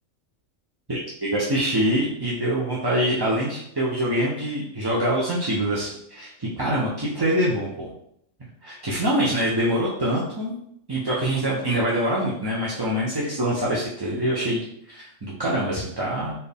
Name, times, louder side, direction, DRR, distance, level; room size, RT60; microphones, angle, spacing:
voice 1, 0.9-7.9 8.6-10.6 10.9-16.3, right 1 dB, 25° right, -6 dB, 0.5 m, -25 dB
4.3 x 2.7 x 3.5 m, 0.72 s
omnidirectional pair, 1.4 m